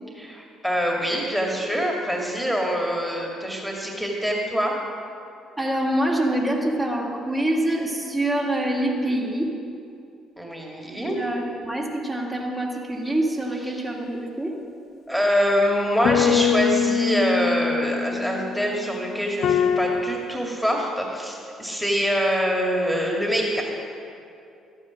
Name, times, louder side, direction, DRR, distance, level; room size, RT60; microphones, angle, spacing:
voice 1, 0.2-4.7 10.4-11.2 13.7-13.8 15.1-23.6, equal, ahead, 0 dB, 2.3 m, -24 dB
voice 2, 5.6-9.5 11.0-14.6, right 1 dB, 20° right, -3 dB, 2.4 m, -25 dB
sound 1, 16.0-18.7 19.4-20.3, left 7 dB, 50° left, 0.6 m, -23 dB
13.5 x 9.7 x 6.4 m, 2.6 s
figure-of-eight pair, 50°, 0 cm